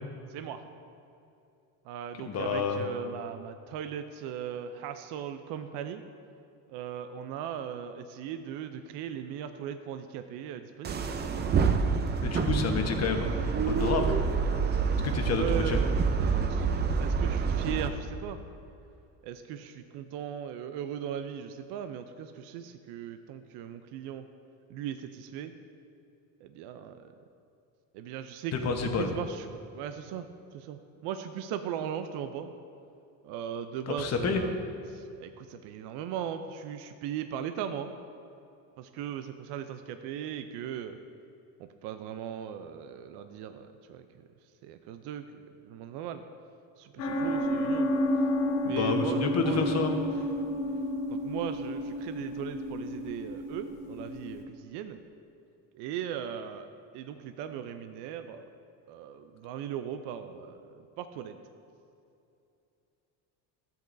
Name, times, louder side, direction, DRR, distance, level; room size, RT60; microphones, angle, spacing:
voice 1, 0.3-0.6 1.8-6.0 6.7-11.6 15.4-16.7 17.0-18.4 19.2-24.2 24.7-25.5 26.4-27.1 27.9-30.3 30.5-32.5 33.2-34.6 34.9-37.9 38.8-41.0 41.6-44.3 44.6-46.2 46.8-48.0 48.6-49.8 51.1-55.0 55.7-56.7 56.9-58.5 58.9-61.4, right 9 dB, 70° right, 8 dB, 0.6 m, -38 dB
voice 2, 2.2-2.8 12.2-13.3 13.7-14.2 15.0-15.8 28.5-29.1 33.9-34.4 48.6-49.9, left 5 dB, 35° left, 4 dB, 1.1 m, -29 dB
sound 1, 10.8-17.9, right 5 dB, 25° right, 0.5 m, -27 dB
sound 2, 47.0-54.4, left 1 dB, 80° left, 1.6 m, -31 dB
13.0 x 7.8 x 2.6 m, 2.7 s
cardioid pair, 110°, 42 cm